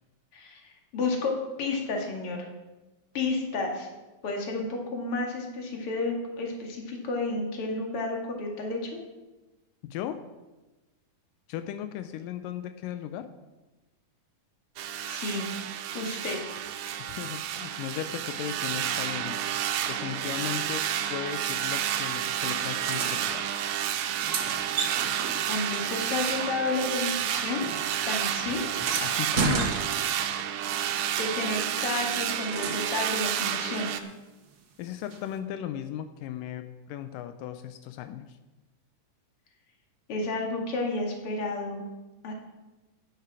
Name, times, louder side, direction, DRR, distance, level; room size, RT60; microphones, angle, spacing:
voice 1, 0.3-2.5 3.1-3.9 4.2-9.0 15.0-15.5 15.9-16.6 25.5-27.7 28.1-28.6 30.8-33.9 40.1-41.8 42.2-42.3, left 3 dB, 45° left, 1 dB, 2.6 m, -31 dB
voice 2, 9.8-10.2 11.5-13.3 17.0-19.4 19.9-23.5 29.0-29.8 34.8-38.4, left 10 dB, 85° left, 10 dB, 2.3 m, -36 dB
sound 1, 14.8-34.0, right 10 dB, 85° right, 2.3 m, -30 dB
sound 2, 22.6-23.4 24.0-26.9 27.2-30.4 31.8-33.1 35.1-35.2, right 6 dB, 55° right, 1.2 m, -34 dB
11.5 x 10.5 x 4.8 m, 1.1 s
omnidirectional pair, 3.8 m